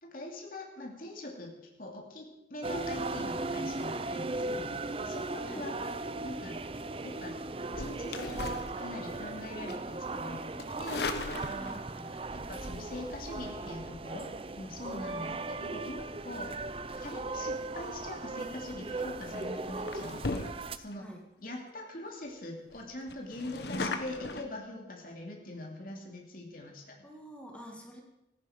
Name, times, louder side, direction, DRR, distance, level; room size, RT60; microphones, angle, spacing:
voice 1, 0.0-1.5 1.8-4.6 5.0-5.9 6.2-6.6 7.0-7.3 7.8-11.0 11.4-11.8 12.3-14.3 14.6-16.5 17.0-20.5 20.8-21.1 21.4-27.1, left 2 dB, 50° left, 1 dB, 2.8 m, -43 dB
sound 1, 2.6-20.8, right 2 dB, 30° right, 0.6 m, -37 dB
voice 2, 4.4-4.7 5.5-5.7 11.6-12.1 15.1-15.5 21.0-21.2 27.0-28.0, equal, 5° left, 0 dB, 1.9 m, -48 dB
sound 2, 7.6-9.3 9.7-10.0 10.6-12.0 13.3-13.5 18.6-18.8 19.3-19.5 19.8-21.0 21.5-21.6 21.8-21.9 22.2-22.3 22.7-24.4, left 3 dB, 65° left, 1.3 m, -38 dB
16.5 x 14.5 x 5.2 m, 0.90 s
head